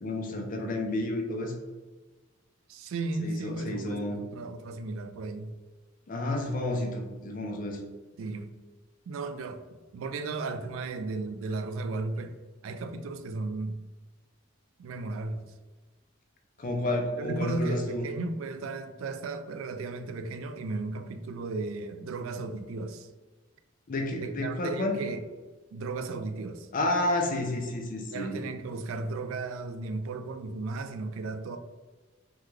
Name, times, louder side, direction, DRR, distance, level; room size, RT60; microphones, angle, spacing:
voice 1, 0.0-1.5 3.2-4.2 6.1-7.8 16.6-18.1 23.9-25.0 26.7-28.4, left 1 dB, 45° left, 0.5 m, -30 dB
voice 2, 2.7-5.5 8.2-8.5 9.1-9.6 9.9-12.4 12.6-13.8 14.8-15.4 17.2-23.1 24.2-25.2 25.7-26.7 28.1-31.6, right 3 dB, 80° right, 0.3 m, -35 dB
3.5 x 2.2 x 3.1 m
head